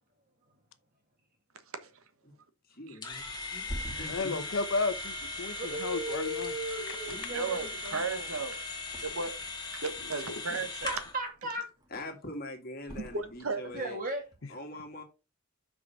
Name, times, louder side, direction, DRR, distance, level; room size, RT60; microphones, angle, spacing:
voice 1, 2.7-4.5 7.1-7.6 11.9-14.0 14.5-15.0, left 1 dB, 45° left, 1.9 m, -43 dB
sound 1, 3.0-11.2, left 3 dB, 20° left, 1.7 m, -39 dB
Thump thud, 3.3-6.5 7.0-7.8 8.0-9.5 9.8-11.4 11.7-12.3 12.8-13.8 14.2-14.4, equal, 20° right, 1.7 m, -47 dB
voice 2, 4.1-6.5 10.3-10.4, left 3 dB, 65° left, 0.8 m, -33 dB
voice 3, 5.5-8.3 10.5-10.6 10.8-11.7 13.7-14.2, right 1 dB, 40° right, 2.3 m, -37 dB
voice 4, 7.3-8.6 9.0-9.3 9.7-11.0 13.0-13.6, right 4 dB, 75° right, 1.2 m, -35 dB
6.3 x 4.9 x 5.9 m
head